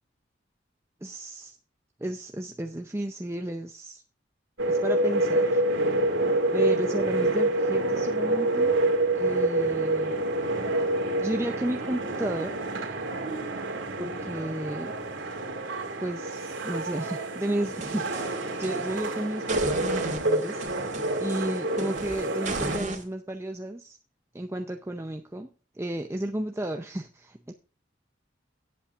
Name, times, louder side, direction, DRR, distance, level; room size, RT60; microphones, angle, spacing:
voice 1, 1.0-1.6 2.0-4.0 4.7-5.6 6.5-8.7 9.1-10.7 11.2-12.6 14.0-14.9 16.0-20.9 21.2-24.0 24.3-25.5 25.7-27.5, right 1 dB, 15° right, 5 dB, 0.6 m, -33 dB
sound 1, 4.6-22.8, right 2 dB, 85° right, 2.5 m, -27 dB
sound 2, 17.6-19.1 19.5-23.0, right 2 dB, 40° right, 2.1 m, -36 dB
17.5 x 8.6 x 2.5 m, 0.37 s
head